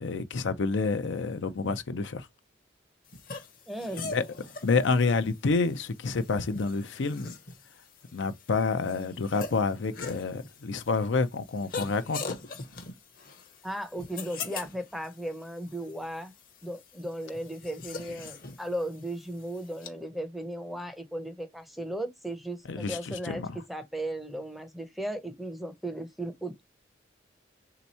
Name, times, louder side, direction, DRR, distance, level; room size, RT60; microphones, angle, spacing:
voice 1, 0.0-2.3 4.1-4.2 4.6-7.3 8.1-12.4 22.7-23.5, left 4 dB, 80° left, 0.5 m, -28 dB
sound 1, 3.1-19.9, left 4 dB, 50° left, 0.9 m, -43 dB
voice 2, 3.7-4.1 13.6-16.3 16.6-26.6, right 1 dB, ahead, 0.6 m, -36 dB
3.5 x 2.8 x 4.2 m
head